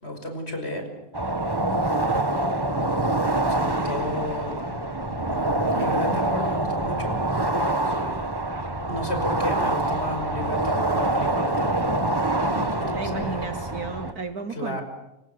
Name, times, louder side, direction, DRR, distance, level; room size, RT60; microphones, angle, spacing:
voice 1, 0.0-0.9 3.5-4.6 5.7-7.2 7.9-8.0 8.9-11.8 12.7-13.5 14.5-14.8, left 1 dB, 20° left, 5.7 m, -33 dB
sound 1, 1.1-14.1, right 2 dB, 30° right, 0.4 m, -25 dB
voice 2, 1.6-2.3 12.5-14.8, right 4 dB, 80° right, 0.8 m, -34 dB
29.0 x 26.0 x 7.1 m
omnidirectional pair, 3.3 m